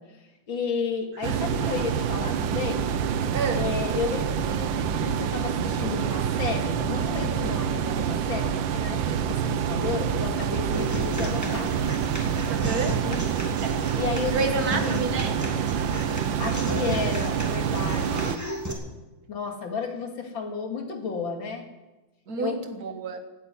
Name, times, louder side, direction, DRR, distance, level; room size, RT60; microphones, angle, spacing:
voice 1, 0.1-2.9 3.5-11.8 13.0-13.2 13.9-15.2 16.4-18.4 19.3-21.6 22.3-22.6, left 5 dB, 80° left, 3 dB, 3.0 m, -32 dB
sound 1, 1.2-18.4, right 8 dB, 80° right, 1.6 m, -27 dB
voice 2, 1.3-1.6 3.3-3.7 12.5-13.0 13.6-13.9 14.3-15.4 22.3-23.2, right 4 dB, 50° right, 7 dB, 2.0 m, -30 dB
Human voice / Acoustic guitar, 10.7-18.7, equal, 10° right, 2.6 m, -34 dB
17.5 x 8.6 x 9.5 m, 1.1 s
omnidirectional pair, 2.1 m